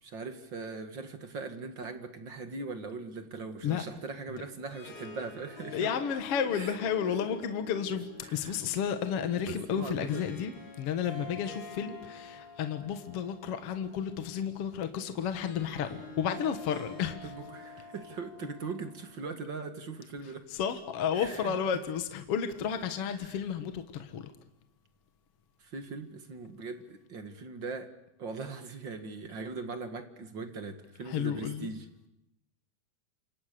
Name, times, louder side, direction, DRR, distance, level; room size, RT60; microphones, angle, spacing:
voice 1, 0.0-5.9 6.6-6.8 7.0-7.1 8.2-8.6 9.4-10.2 11.1-11.2 17.2-20.5 21.1-21.6 23.2-23.4 25.6-27.9 28.2-31.9, right 4 dB, 40° right, 8 dB, 2.2 m, -40 dB
Harp, 4.4-19.7, left 3 dB, 80° left, 6.6 m, -48 dB
voice 2, 5.7-10.5 10.8-17.3 20.5-24.3 31.1-31.7, left 8 dB, 55° left, 9 dB, 2.3 m, -32 dB
28.5 x 26.0 x 6.8 m, 0.84 s
omnidirectional pair, 3.5 m